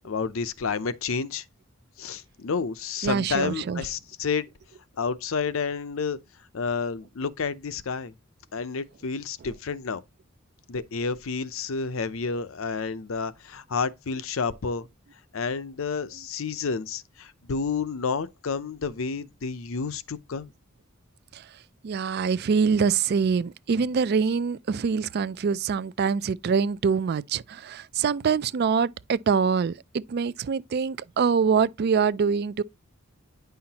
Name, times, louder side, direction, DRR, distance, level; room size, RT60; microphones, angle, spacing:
voice 1, 0.0-1.4 2.0-4.5 5.0-6.2 6.5-8.1 8.5-10.0 10.7-14.9 15.3-20.5, left 5 dB, 75° left, 0.6 m, -30 dB
voice 2, 3.0-3.8 21.3-21.4 21.8-32.6, right 6 dB, 50° right, 0.4 m, -24 dB
9.5 x 5.7 x 2.8 m
head